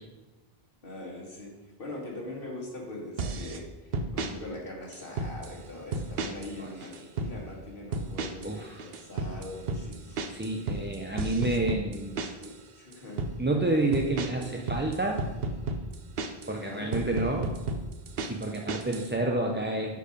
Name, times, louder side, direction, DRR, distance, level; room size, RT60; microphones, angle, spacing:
voice 1, 0.8-10.3 12.2-13.2 16.5-16.9, left 1 dB, 60° left, -2 dB, 2.1 m, -42 dB
sound 1, 3.2-3.6 3.9-4.3 4.9-5.5 5.9-6.5 6.8-7.3 7.9-8.5 8.8-12.5 12.9-13.3 13.9-16.5 16.9-19.1, right 3 dB, 70° right, 1.0 m, -32 dB
voice 2, 8.4-8.8 10.3-12.3 13.4-15.2 16.5-17.5 18.3-20.0, right 2 dB, 15° right, 1 dB, 0.4 m, -29 dB
9.9 x 4.7 x 5.2 m, 1.1 s
omnidirectional pair, 1.0 m